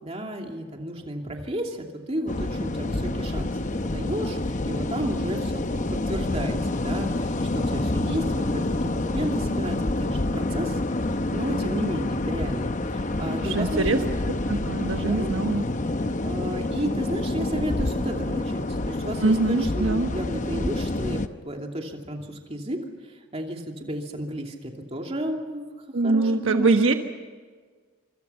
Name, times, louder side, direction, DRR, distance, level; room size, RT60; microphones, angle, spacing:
voice 1, 0.0-3.5 3.8-10.8 11.3-14.1 15.1-15.3 16.2-22.8 23.3-25.6 26.0-26.7, right 1 dB, 30° right, 2 dB, 2.8 m, -32 dB
sound 1, 2.3-21.3, left 2 dB, 35° left, 0.8 m, -27 dB
voice 2, 13.4-14.0 14.5-15.7 19.2-20.1 25.9-26.9, right 3 dB, 70° right, 5 dB, 1.3 m, -23 dB
26.0 x 26.0 x 5.7 m, 1.5 s
head